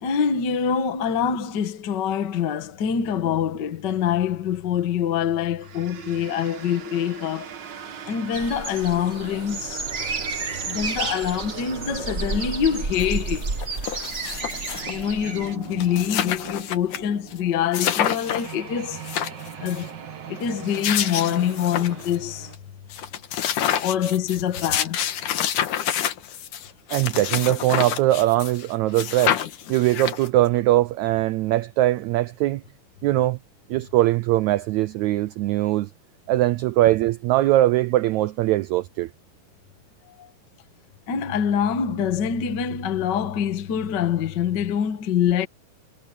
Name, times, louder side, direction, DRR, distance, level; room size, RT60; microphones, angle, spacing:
voice 1, 0.0-7.5 8.0-9.9 10.7-13.5 14.9-19.0 19.6-19.9 20.3-22.5 23.8-25.0 40.1-40.3 41.1-45.5, left 8 dB, 50° left, 1.4 m, -25 dB
sound 1, 5.6-22.5, right 8 dB, 60° right, 1.2 m, -41 dB
sound 2, 8.3-15.5, right 4 dB, 35° right, 1.1 m, -31 dB
sound 3, 13.0-13.1 13.4-15.0 15.5-15.6 15.7-17.0 17.3-17.4 17.7-18.5 18.9-19.8 20.5-22.2 22.5-22.6 22.9-28.7 28.9-30.5, left 10 dB, 70° left, 2.9 m, -28 dB
voice 2, 26.9-29.4 29.7-32.6 33.0-33.4 33.7-35.9 36.3-39.1, right 15 dB, 85° right, 1.6 m, -21 dB
omnidirectional pair, 3.9 m